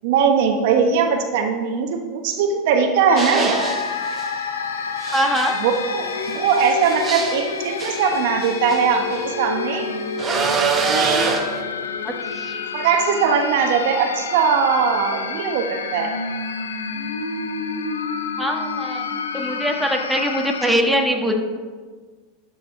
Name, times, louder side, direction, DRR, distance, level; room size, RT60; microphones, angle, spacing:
voice 1, 0.0-3.5 5.5-9.9 10.9-11.3 12.7-16.2, right 6 dB, 65° right, 5 dB, 1.1 m, -20 dB
sound 1, 3.1-20.7, left 5 dB, 85° left, 0.7 m, -29 dB
sound 2, 3.2-4.3 5.0-9.3 10.2-11.6, right 5 dB, 25° right, 1.3 m, -25 dB
voice 2, 5.1-5.6 12.0-12.6 18.4-19.0 19.3-21.3, equal, ahead, 1 dB, 1.4 m, -22 dB
13.0 x 5.0 x 4.8 m, 1.5 s
hypercardioid pair, 90°, 0 cm